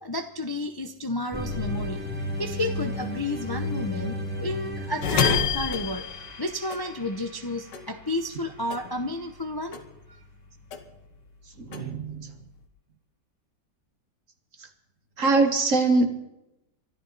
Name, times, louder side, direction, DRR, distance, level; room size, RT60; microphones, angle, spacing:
voice 1, 0.0-2.0 2.4-9.8 10.1-10.2, left 1 dB, 20° left, 6 dB, 0.6 m, -31 dB
sound 1, 1.3-7.7, left 1 dB, 5° right, 2.5 m, -33 dB
sound 2, 5.0-7.5 7.7-9.4 9.7-11.1 11.5-12.6, left 7 dB, 70° left, 2.0 m, -29 dB
voice 2, 11.7-12.3 15.2-16.1, right 3 dB, 45° right, 7 dB, 1.8 m, -22 dB
24.0 x 12.0 x 4.1 m, 0.89 s
omnidirectional pair, 2.0 m